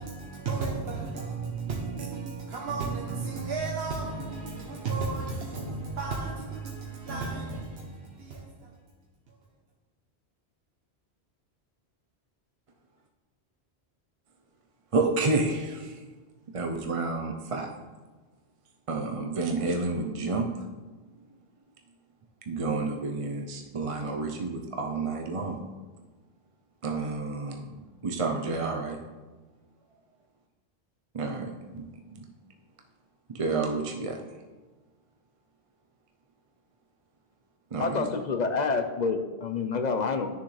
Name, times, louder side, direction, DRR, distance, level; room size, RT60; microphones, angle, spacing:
voice 1, 0.0-8.7, right 4 dB, 70° right, 1.2 m, -33 dB
voice 2, 14.9-16.0 16.5-17.7 18.9-20.5 22.5-25.6 26.8-27.7 28.0-29.0 31.1-31.9 32.1-32.3 33.3-34.2 37.7-38.1, right 3 dB, 35° right, 0.7 m, -30 dB
voice 3, 37.8-40.3, left 4 dB, 45° left, 0.7 m, -28 dB
11.0 x 6.8 x 3.2 m
omnidirectional pair, 1.1 m